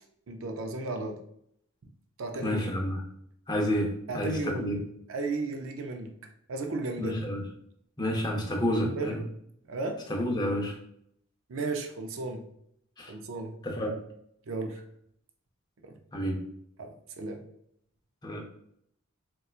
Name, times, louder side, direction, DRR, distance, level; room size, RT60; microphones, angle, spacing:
voice 1, 0.3-1.2 2.2-2.6 4.1-4.7 5.1-6.1 6.5-7.2 8.7-9.2 9.7-10.0 11.5-12.5 13.1-13.6 14.5-14.8 15.8-16.0 16.8-17.4, right 3 dB, 65° right, 4 dB, 0.4 m, -34 dB
voice 2, 2.4-3.0 3.5-4.7 7.0-7.4 8.0-9.2 10.1-10.7 13.0-13.1 13.6-13.9 16.1-16.4 18.2-18.4, equal, 20° left, 0 dB, 0.5 m, -29 dB
4.2 x 2.2 x 2.4 m, 0.70 s
head